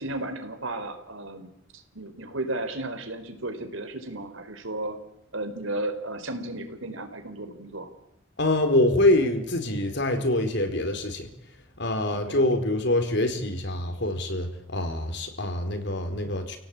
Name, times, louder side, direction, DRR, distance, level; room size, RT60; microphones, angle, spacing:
voice 1, 0.0-5.0 5.3-7.9 12.1-12.4, right 2 dB, 75° right, 8 dB, 4.2 m, -34 dB
voice 2, 8.4-11.3 11.8-16.6, left 1 dB, 60° left, 7 dB, 4.4 m, -25 dB
29.0 x 17.5 x 8.7 m, 0.80 s
head